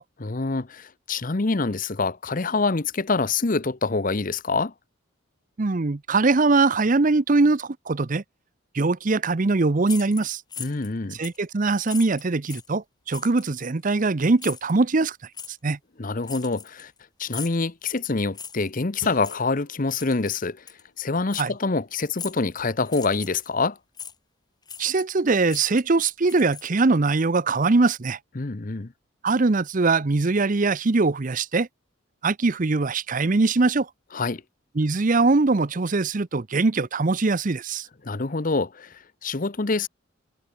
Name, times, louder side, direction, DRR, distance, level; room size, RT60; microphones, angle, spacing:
voice 1, 0.2-4.7 10.6-11.2 16.0-16.9 17.2-20.6 21.0-23.8 28.4-28.9 34.1-34.4 38.0-39.9, left 3 dB, 40° left, 0.8 m, -26 dB
voice 2, 5.6-8.2 8.7-10.4 11.2-15.2 15.6-15.8 21.4-21.5 24.8-28.2 29.2-31.7 32.2-33.9 34.8-37.9, right 3 dB, 40° right, 0.6 m, -22 dB
sound 1, 9.8-10.9 11.2-11.5 11.8-12.7 13.1-13.5 14.4-14.7 15.3-15.5 16.2-17.0 17.3-17.6 18.3-18.7 19.2-19.4 20.0-20.3 20.7-20.8 21.3-21.5 22.1-22.5 22.9-23.5 24.0-24.1 24.7-25.2 25.5-27.0, left 7 dB, 20° left, 4.7 m, -39 dB
sound 2, 19.0-22.1, left 2 dB, 85° left, 4.6 m, -47 dB
head